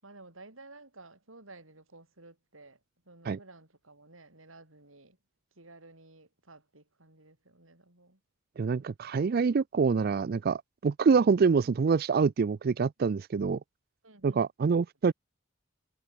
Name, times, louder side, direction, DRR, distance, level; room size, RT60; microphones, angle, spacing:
voice 1, 0.0-2.8 3.0-5.2 5.6-8.2 14.0-14.5, right 2 dB, 90° right, 7.9 m, -53 dB
voice 2, 8.6-13.6 14.2-15.1, right 5 dB, 50° right, 0.4 m, -26 dB
head